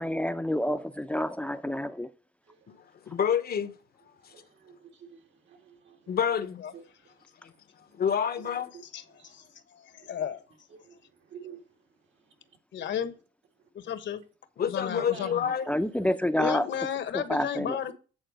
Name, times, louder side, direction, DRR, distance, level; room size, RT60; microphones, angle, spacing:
voice 1, 0.0-2.1 15.7-16.7 17.1-17.8, left 1 dB, 5° left, 0.6 m, -28 dB
voice 2, 2.4-2.9 4.2-6.2 6.7-7.2 7.8-8.0 8.4-9.6 9.9-10.3 10.7-11.9 12.2-12.6 13.6-14.0 15.0-15.4, right 6 dB, 70° right, 2.2 m, -50 dB
voice 3, 3.1-3.7 4.2-4.3 6.1-6.6 7.4-7.5 7.9-8.7 14.6-15.6, left 8 dB, 50° left, 0.9 m, -28 dB
voice 4, 8.9-9.4 9.7-10.4 12.7-13.1 13.7-14.2 14.7-15.4 16.4-17.9, left 9 dB, 65° left, 1.2 m, -33 dB
8.9 x 4.4 x 6.3 m
cardioid pair, 90°, 20 cm